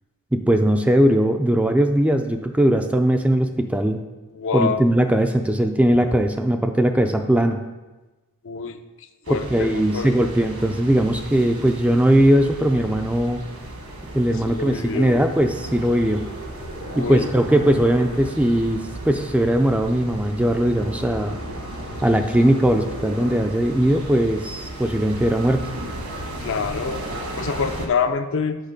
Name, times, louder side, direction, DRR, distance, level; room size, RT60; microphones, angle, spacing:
voice 1, 0.3-4.0 4.5-7.6 9.3-13.4 14.1-16.2 17.0-18.8 19.0-21.4 22.0-25.6, right 1 dB, 5° right, 6 dB, 0.3 m, -19 dB
voice 2, 4.3-4.9 8.4-8.8 9.3-10.3 14.5-15.2 16.9-17.3 26.4-27.0 27.4-28.6, left 5 dB, 60° left, 8 dB, 0.5 m, -26 dB
sound 1, 9.3-27.9, right 1 dB, 65° right, 1.4 m, -34 dB
6.5 x 5.3 x 5.1 m, 1.1 s
head